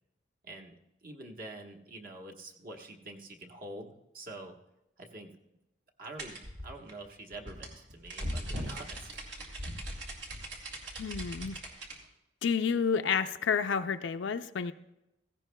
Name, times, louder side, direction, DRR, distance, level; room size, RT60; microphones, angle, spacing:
voice 1, 0.4-0.7 1.0-4.6 5.0-5.3 6.0-6.4 6.6-9.4, right 2 dB, 50° right, 2 dB, 1.3 m, -46 dB
sound 1, 6.2-12.0, equal, 75° right, 2.3 m, -39 dB
voice 2, 11.0-11.6 12.4-14.7, left 6 dB, 85° left, 8 dB, 0.4 m, -30 dB
16.5 x 15.5 x 2.2 m, 0.91 s
head